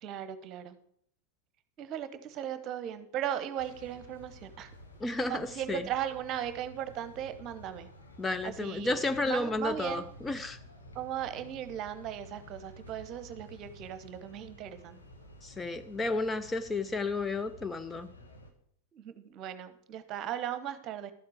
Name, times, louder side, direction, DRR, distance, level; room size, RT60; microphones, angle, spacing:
voice 1, 0.0-0.8 1.8-4.7 5.2-7.9 8.4-9.0 9.3-10.0 10.9-15.0 18.9-21.1, right 10 dB, 35° right, 1.0 m, -37 dB
sound 1, 3.6-18.5, left 1 dB, 75° left, 1.5 m, -52 dB
voice 2, 5.0-5.9 8.2-10.6 15.4-18.1, left 2 dB, 10° left, 0.4 m, -32 dB
12.5 x 7.2 x 4.9 m
figure-of-eight pair, 90°, 0 cm